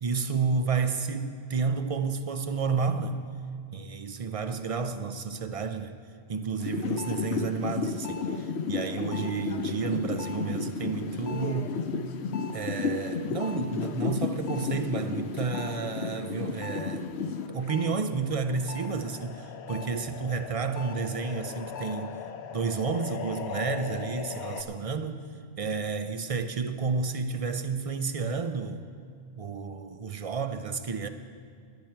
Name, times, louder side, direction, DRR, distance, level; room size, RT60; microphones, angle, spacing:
voice 1, 0.0-3.2 3.7-6.0 6.3-11.8 12.5-17.1 17.5-22.2 22.5-25.2 25.6-28.8 29.4-31.1, right 5 dB, 45° right, 0.4 m, -31 dB
sound 1, 6.6-17.9 18.3-24.6, left 5 dB, 75° left, 1.0 m, -34 dB
17.5 x 10.5 x 4.5 m
omnidirectional pair, 1.2 m